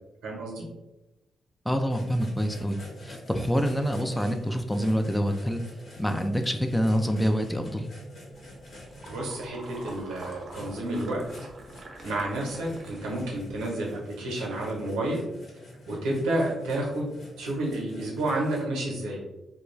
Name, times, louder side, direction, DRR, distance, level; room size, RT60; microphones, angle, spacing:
voice 1, 0.2-0.7 9.0-11.2 12.0-15.2 15.9-17.1 17.4-19.2, right 1 dB, 85° right, -3 dB, 0.8 m, -30 dB
voice 2, 1.7-2.8 3.0-5.6 6.0-7.9, equal, 5° left, 5 dB, 0.4 m, -26 dB
sound 1, 1.9-18.6, left 1 dB, 65° left, 0.9 m, -47 dB
sound 2, 8.3-13.6, right 2 dB, 55° right, 0.6 m, -46 dB
2.3 x 2.2 x 3.1 m, 0.99 s
supercardioid pair, 45°, 0 cm